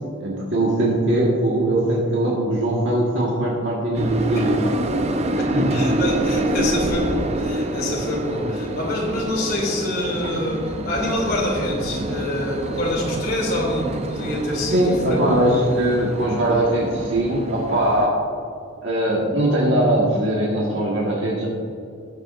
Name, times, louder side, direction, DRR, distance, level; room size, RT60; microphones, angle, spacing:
voice 1, 0.2-4.7 5.4-5.7 14.7-18.1 18.8-21.5, right 1 dB, 70° right, -4 dB, 1.6 m, -21 dB
sound 1, 3.9-18.1, right 1 dB, 35° right, 0.5 m, -26 dB
voice 2, 5.4-15.2, left 1 dB, 50° left, -3 dB, 2.7 m, -26 dB
18.5 x 7.3 x 2.6 m, 2.4 s
head